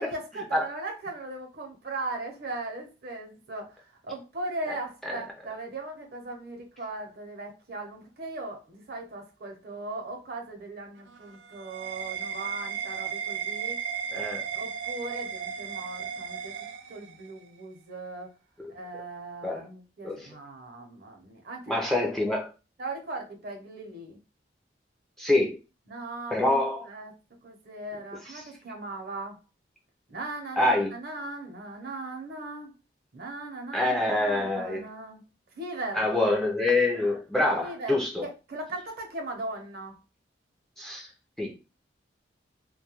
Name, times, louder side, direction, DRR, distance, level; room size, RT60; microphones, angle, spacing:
voice 1, 0.0-13.8 14.5-16.6 16.9-18.3 18.7-21.7 22.8-24.2 25.9-26.6 26.8-27.1 27.4-29.4 30.1-32.7 33.1-35.2 35.6-36.1 37.6-40.0, right 2 dB, 60° right, 2 dB, 0.7 m, -38 dB
sound 1, 11.0-17.4, right 7 dB, 80° right, 0.3 m, -35 dB
voice 2, 14.1-14.5 19.4-19.6 20.0-20.3 21.7-22.5 25.2-25.6 26.3-26.9 30.6-30.9 33.7-34.9 35.9-38.2 40.8-41.1 41.4-41.5, left 2 dB, 5° left, -1 dB, 0.4 m, -26 dB
2.2 x 2.1 x 2.9 m, 0.30 s
head